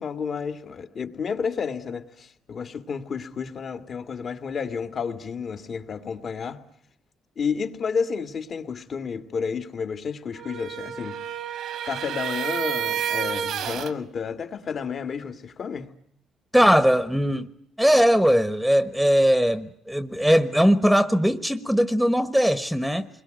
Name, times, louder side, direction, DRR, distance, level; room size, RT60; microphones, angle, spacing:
voice 1, 0.0-6.6 7.4-11.4 11.9-15.9, left 6 dB, 50° left, 2.1 m, -31 dB
sound 1, 10.3-13.9, right 10 dB, 75° right, 1.7 m, -30 dB
voice 2, 16.5-17.5 17.8-23.1, equal, ahead, 1.1 m, -20 dB
29.0 x 22.0 x 9.2 m
cardioid pair, 90°, 0 cm